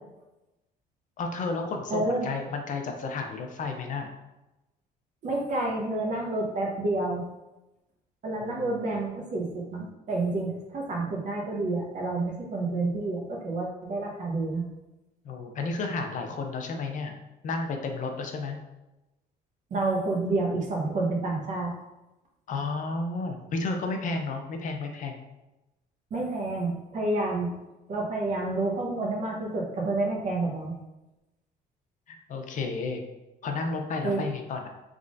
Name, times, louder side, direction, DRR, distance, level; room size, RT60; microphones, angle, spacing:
voice 1, 1.2-4.1 8.4-8.7 15.2-17.1 17.4-18.6 22.5-25.2 32.1-33.0 33.4-34.7, left 3 dB, 50° left, 4 dB, 0.5 m, -32 dB
voice 2, 1.9-2.3 5.2-7.2 8.2-14.6 19.7-21.7 26.1-27.5 27.9-30.7 34.0-34.3, right 2 dB, 45° right, -1 dB, 0.9 m, -29 dB
3.6 x 3.2 x 2.5 m, 0.98 s
cardioid pair, 110°, 17 cm